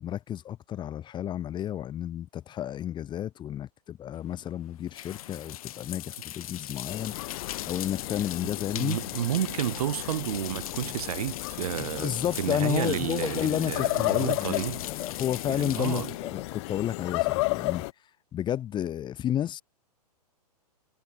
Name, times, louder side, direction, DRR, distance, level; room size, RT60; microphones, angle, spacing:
voice 1, 0.0-9.0 11.8-17.8 18.3-19.6, left 11 dB, 20° left, 1.9 m, -32 dB
sound 1, 4.1-17.3, left 13 dB, 60° left, 3.9 m, -40 dB
sound 2, 6.9-17.9, left 23 dB, 45° left, 1.3 m, -34 dB
voice 2, 8.7-14.8 15.5-16.1, right 12 dB, 60° right, 6.8 m, -31 dB
hypercardioid pair, 125°, 21 cm